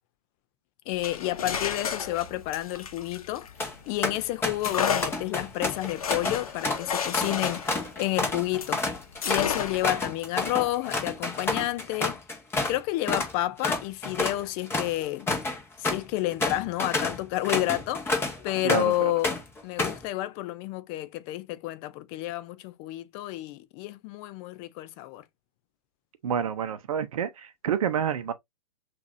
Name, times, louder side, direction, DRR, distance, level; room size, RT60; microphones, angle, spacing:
sound 1, 0.9-4.0 4.6-8.8 9.2-10.0, left 7 dB, 65° left, 0.8 m, -32 dB
voice 1, 0.9-3.5 3.9-8.8 9.2-12.2 12.7-15.3 15.8-18.1 18.4-19.3 19.6-25.2, left 16 dB, 25° left, 0.4 m, -30 dB
sound 2, 3.4-3.7 4.0-4.8 5.0-12.8 13.1-13.3 13.6-19.0 19.2-20.1, left 2 dB, 10° left, 1.1 m, -30 dB
voice 2, 18.6-19.1 26.2-28.3, right 8 dB, 60° right, 0.7 m, -28 dB
5.9 x 2.6 x 2.6 m
figure-of-eight pair, 115°, 20 cm